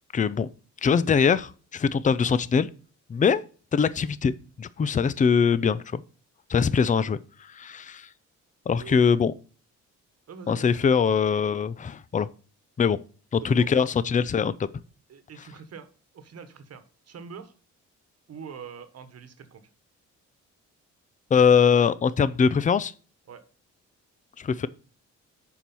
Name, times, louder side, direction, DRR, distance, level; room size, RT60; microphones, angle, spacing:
voice 1, 0.1-0.5 0.8-2.7 3.1-3.4 3.7-6.0 6.5-8.1 8.7-9.3 10.5-12.3 12.8-13.0 13.3-14.5 21.3-22.9 24.4-24.7, left 6 dB, 25° left, 0.5 m, -22 dB
voice 2, 10.3-10.7 13.4-13.8 15.1-15.9 16.1-17.5 18.3-19.6 23.3-23.4, right 6 dB, 55° right, 1.3 m, -44 dB
7.2 x 4.6 x 5.4 m
cardioid pair, 90°, 30 cm